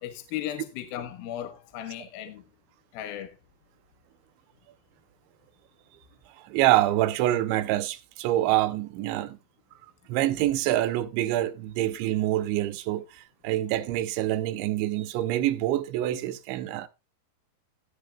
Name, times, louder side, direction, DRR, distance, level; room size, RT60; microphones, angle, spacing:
voice 1, 0.0-2.4 2.9-3.4, left 11 dB, 70° left, 2.5 m, -36 dB
voice 2, 6.4-9.4 10.1-16.9, right 14 dB, 90° right, 3.2 m, -26 dB
16.0 x 10.0 x 2.3 m
omnidirectional pair, 5.1 m